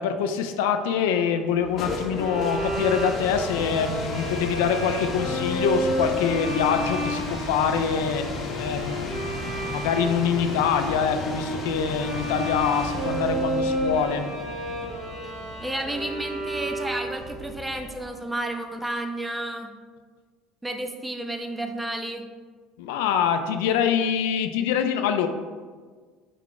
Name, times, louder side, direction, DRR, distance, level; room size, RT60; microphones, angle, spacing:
voice 1, 0.0-8.3 8.6-14.3 22.8-25.3, left 7 dB, 85° left, 0.3 m, -25 dB
sound 1, 1.5-18.2, left 3 dB, 45° left, 0.6 m, -35 dB
Bowed string instrument, 2.1-17.4, right 1 dB, 55° right, 1.5 m, -31 dB
voice 2, 15.6-19.7 20.6-22.3, right 1 dB, 10° right, 0.4 m, -31 dB
4.5 x 2.4 x 3.7 m
supercardioid pair, 105°, 0 cm